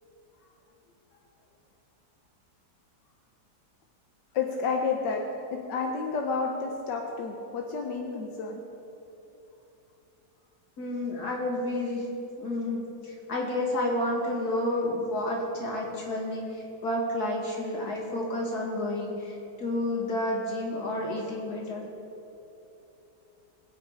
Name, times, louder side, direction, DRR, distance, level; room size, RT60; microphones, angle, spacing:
voice 1, 4.3-5.2 5.5-8.6, left 5 dB, 90° left, 2 dB, 1.6 m, -30 dB
voice 2, 10.8-12.0 12.4-21.9, left 1 dB, 65° left, -2 dB, 2.8 m, -30 dB
21.5 x 8.3 x 4.9 m, 3.0 s
omnidirectional pair, 1.8 m